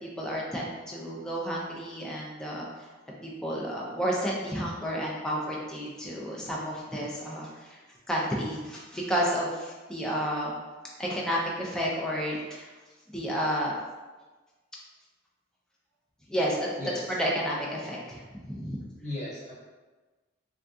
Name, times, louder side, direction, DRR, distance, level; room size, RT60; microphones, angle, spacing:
voice 1, 0.0-2.7 3.2-7.8 8.1-10.5 11.0-12.7 13.1-13.7 16.3-16.7 17.1-18.2 18.5-18.8, equal, 5° left, -4 dB, 0.4 m, -31 dB
voice 2, 16.8-17.2 19.0-19.5, left 1 dB, 35° left, -10 dB, 1.4 m, -36 dB
3.4 x 2.3 x 2.6 m, 1.3 s
head